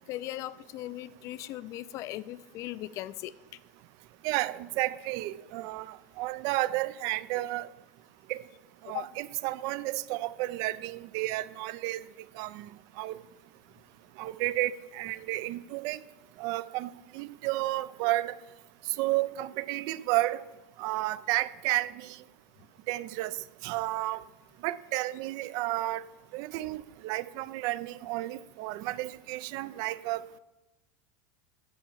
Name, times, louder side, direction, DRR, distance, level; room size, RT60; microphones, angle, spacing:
voice 1, 0.1-3.3 8.8-9.1, left 15 dB, 40° left, 17 dB, 0.4 m, -38 dB
voice 2, 4.2-7.7 8.3-8.4 8.8-12.0 12.4-12.7 13.0-13.2 14.2-16.0 16.4-18.3 19.0-20.4 20.8-22.1 22.9-23.3 23.6-24.2 24.6-26.0 26.3-30.4, right 17 dB, 50° right, 17 dB, 0.4 m, -32 dB
9.8 x 4.6 x 7.2 m, 1.0 s
supercardioid pair, 145°, 8 cm